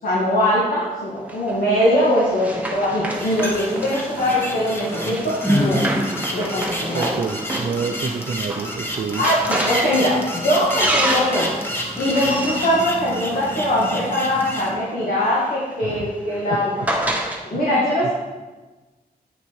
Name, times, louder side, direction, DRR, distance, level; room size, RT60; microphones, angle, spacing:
voice 1, 0.0-5.9 6.3-7.1 9.2-11.6 12.0-16.8 17.5-18.1, left 1 dB, 60° left, -6 dB, 2.1 m, -21 dB
Run, 1.3-13.9 14.9-17.4, right 1 dB, 10° right, 1.1 m, -29 dB
sound 1, 3.1-14.7, equal, 15° left, 1.2 m, -28 dB
voice 2, 6.9-9.3 15.8-16.1 16.5-16.9 17.5-18.1, right 5 dB, 55° right, 3 dB, 0.5 m, -29 dB
9.0 x 7.0 x 4.7 m, 1.2 s
wide cardioid pair, 165°, 16 cm